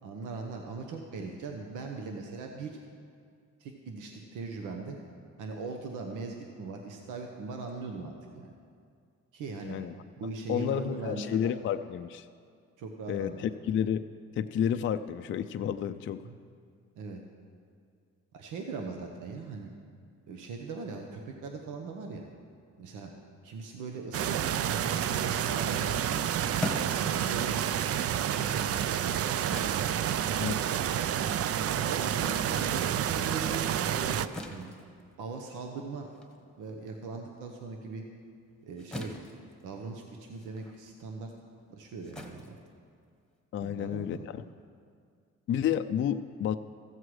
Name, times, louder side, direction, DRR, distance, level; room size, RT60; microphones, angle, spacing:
voice 1, 0.0-2.8 3.6-5.0 5.4-8.5 9.3-9.8 10.2-11.5 12.8-13.4 16.2-16.4 17.0-17.2 18.3-19.7 20.3-22.3 22.8-23.1 23.4-26.2 26.9-27.6 28.3-29.2 31.2-34.2 34.5-34.7 35.2-36.1 36.6-38.0 38.6-39.1 39.6-41.3 41.7-42.6 43.6-44.3, right 4 dB, 85° right, 3 dB, 0.9 m, -40 dB
voice 2, 9.6-9.9 10.5-12.3 13.1-14.1 14.4-16.2 30.4-30.6 43.5-44.4 45.5-46.6, left 9 dB, 40° left, 9 dB, 0.4 m, -30 dB
sound 1, 24.1-34.3, right 10 dB, 50° right, 0.4 m, -29 dB
sound 2, 26.6-32.9 33.2-43.4, left 1 dB, 5° left, 1.2 m, -44 dB
14.5 x 7.7 x 4.8 m, 2.2 s
cardioid pair, 90°, 30 cm